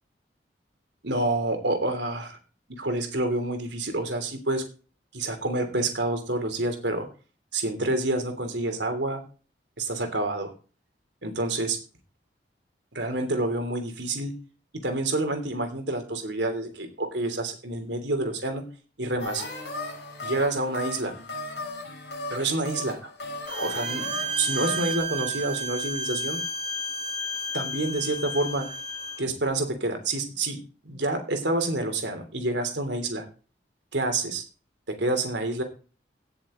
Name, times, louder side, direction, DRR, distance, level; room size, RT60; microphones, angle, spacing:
voice 1, 1.0-2.4 2.8-4.6 5.1-7.1 7.5-9.2 9.8-10.5 11.2-11.8 12.9-14.3 14.8-18.6 19.0-19.4 20.2-21.1 22.3-23.1 23.6-26.4 27.5-28.7 29.2-30.6 30.8-33.2 33.9-34.4 34.9-35.6, right 2 dB, 80° right, 6 dB, 3.2 m, -28 dB
sound 1, 19.2-25.0, left 2 dB, 70° left, 7.1 m, -36 dB
Bowed string instrument, 23.5-29.2, right 1 dB, 30° right, 2.8 m, -32 dB
17.0 x 6.9 x 3.8 m, 0.36 s
head